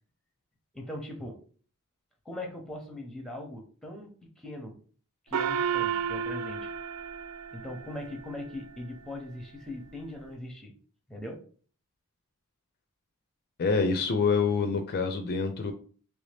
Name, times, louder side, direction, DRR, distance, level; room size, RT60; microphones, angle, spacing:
voice 1, 0.7-1.4 2.2-4.8 5.3-6.7 7.5-10.7 11.1-11.5, left 1 dB, ahead, 2 dB, 0.6 m, -40 dB
Gong, 5.3-8.2, right 7 dB, 80° right, 0.3 m, -32 dB
voice 2, 13.6-15.7, left 4 dB, 45° left, 6 dB, 0.4 m, -26 dB
3.2 x 2.7 x 3.3 m, 0.42 s
head